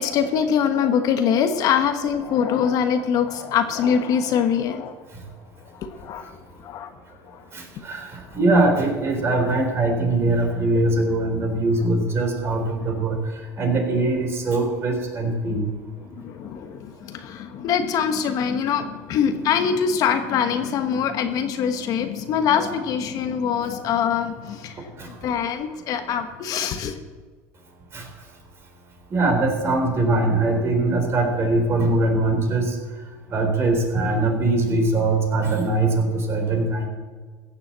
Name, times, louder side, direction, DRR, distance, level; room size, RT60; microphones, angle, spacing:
voice 1, 0.0-5.0 5.6-6.9 7.2-7.4 8.3-8.4 9.3-9.4 16.0-27.0, left 7 dB, 50° left, 7 dB, 1.2 m, -24 dB
voice 2, 7.5-13.2 13.6-15.7 25.0-25.1 27.9-28.0 29.1-32.8 33.3-36.8, right 2 dB, 35° right, 3 dB, 4.0 m, -22 dB
15.5 x 7.4 x 7.5 m, 1.4 s
supercardioid pair, 120°, 8 cm